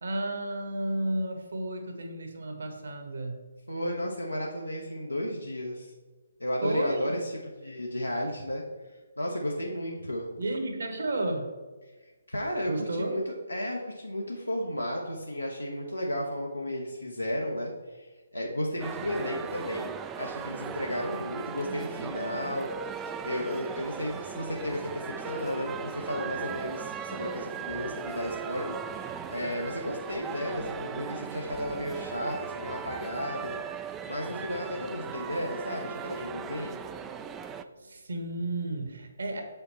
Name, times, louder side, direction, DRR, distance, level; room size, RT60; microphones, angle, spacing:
voice 1, 0.0-3.4 6.6-7.2 10.4-11.5 12.7-13.1 37.7-39.4, right 1 dB, 60° right, 4 dB, 1.5 m, -32 dB
voice 2, 3.7-5.9 6.4-7.3 7.6-10.3 12.0-19.9 20.2-33.6 33.9-36.8, left 1 dB, 90° left, -2 dB, 1.0 m, -33 dB
sound 1, 18.8-37.6, right 7 dB, 15° right, 0.3 m, -38 dB
7.0 x 5.6 x 4.4 m, 1.3 s
figure-of-eight pair, 140°, 0 cm